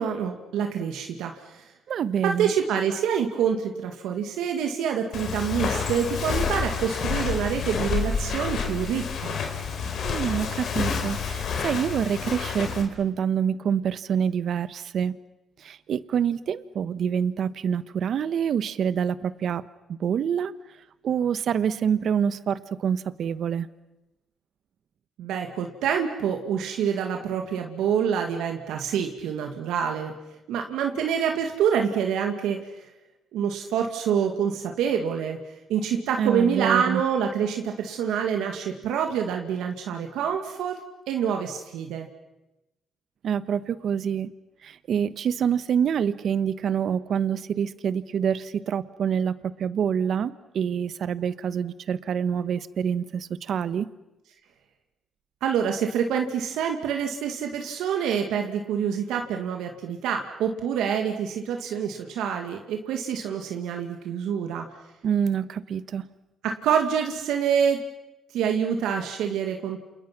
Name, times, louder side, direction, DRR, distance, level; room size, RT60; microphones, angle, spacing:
voice 1, 0.0-1.6 2.2-9.4 25.2-30.1 30.5-32.8 33.3-35.4 35.7-40.8 41.1-42.1 55.4-64.6 66.4-67.8 68.3-69.8, right 7 dB, 90° right, 3 dB, 2.0 m, -26 dB
voice 2, 1.9-2.5 10.0-15.1 15.6-19.6 19.9-20.5 21.0-23.7 36.2-37.0 43.2-44.3 44.6-53.9 65.0-66.1, right 8 dB, 65° right, 15 dB, 1.1 m, -26 dB
Walk footsteps, 5.1-12.8, left 6 dB, 70° left, 4.1 m, -29 dB
29.5 x 28.0 x 6.0 m, 0.98 s
cardioid pair, 90°, 0 cm